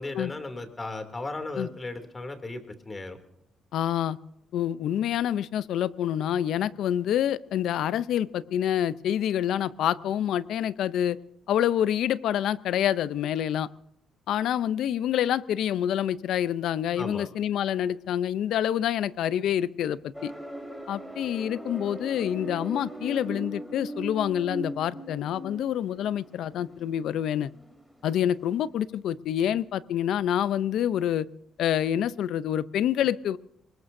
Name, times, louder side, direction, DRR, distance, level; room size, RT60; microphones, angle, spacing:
voice 1, 0.0-3.2 16.9-17.3, left 2 dB, 25° left, 7 dB, 2.7 m, -36 dB
voice 2, 3.7-4.2 4.5-11.2 11.5-13.7 14.3-20.3 20.9-27.5 28.0-31.3 31.6-33.4, left 10 dB, 80° left, 17 dB, 0.5 m, -27 dB
sound 1, 20.1-28.0 28.3-28.6, right 1 dB, ahead, 3.1 m, -39 dB
24.0 x 20.5 x 2.7 m, 0.79 s
cardioid pair, 90°, 0 cm